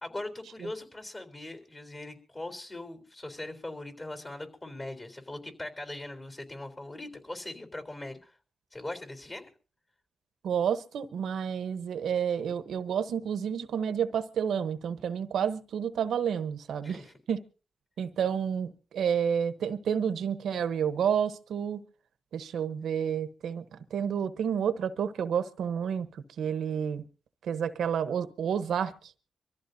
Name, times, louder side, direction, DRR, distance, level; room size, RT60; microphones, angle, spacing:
voice 1, 0.0-8.3 8.7-9.5 16.8-17.1, left 2 dB, 35° left, 3.7 m, -40 dB
voice 2, 10.4-17.0 17.3-17.4 18.0-21.8 22.3-26.1 26.4-27.0 27.4-29.1, right 8 dB, 90° right, 1.0 m, -30 dB
24.5 x 14.5 x 2.7 m
cardioid pair, 60°, 0 cm